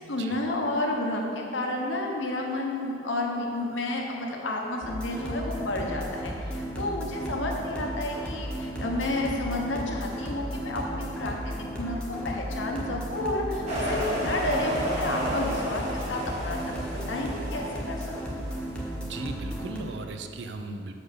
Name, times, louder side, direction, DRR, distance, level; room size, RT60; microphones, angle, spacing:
voice 1, 0.0-15.8 16.1-18.5, left 2 dB, 75° left, 0 dB, 1.0 m, -31 dB
sound 1, 4.8-19.8, equal, 5° left, 0.9 m, -35 dB
sound 2, 13.7-18.6, equal, 35° right, 1.4 m, -32 dB
voice 2, 19.0-20.9, right 3 dB, 65° right, 6 dB, 0.5 m, -37 dB
6.2 x 5.0 x 6.6 m, 2.7 s
head